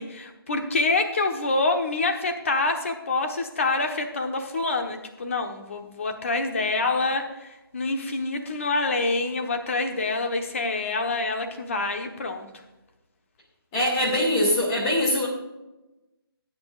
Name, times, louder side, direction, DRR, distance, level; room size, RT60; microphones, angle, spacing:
voice 1, 0.0-12.5, left 3 dB, 30° left, 5 dB, 1.2 m, -26 dB
voice 2, 13.7-15.3, left 1 dB, 10° left, -5 dB, 2.4 m, -22 dB
20.0 x 8.8 x 2.5 m, 1.0 s
hypercardioid pair, 175°, 13 cm